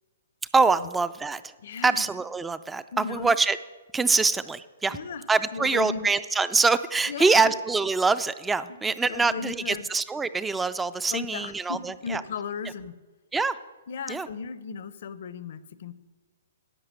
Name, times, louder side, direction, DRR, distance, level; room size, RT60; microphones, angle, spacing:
voice 1, 0.5-1.5 1.8-3.6 3.9-5.0 5.3-12.2 13.3-13.6 14.1-14.3, right 4 dB, 10° right, 14 dB, 0.4 m, -24 dB
voice 2, 1.6-2.0 2.9-3.3 4.9-5.2 5.5-6.1 7.1-7.5 8.7-8.8 9.1-9.9 11.1-12.9 13.9-15.9, left 5 dB, 60° left, 16 dB, 0.7 m, -35 dB
11.0 x 7.9 x 7.5 m, 1.3 s
hypercardioid pair, 145°, 0 cm